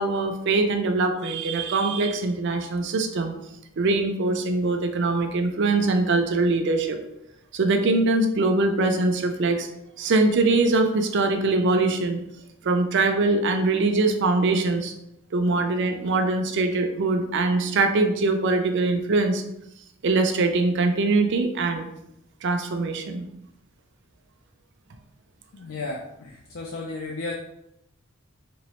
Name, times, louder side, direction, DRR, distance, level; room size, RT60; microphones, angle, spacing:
voice 1, 0.0-3.3 3.8-7.0 7.5-9.7 10.0-12.2 12.6-14.9 15.3-19.4 20.0-21.9 22.4-23.2, right 3 dB, 60° right, 6 dB, 0.5 m, -22 dB
voice 2, 25.5-27.3, left 3 dB, 75° left, -1 dB, 0.5 m, -34 dB
3.5 x 3.0 x 3.0 m, 0.82 s
head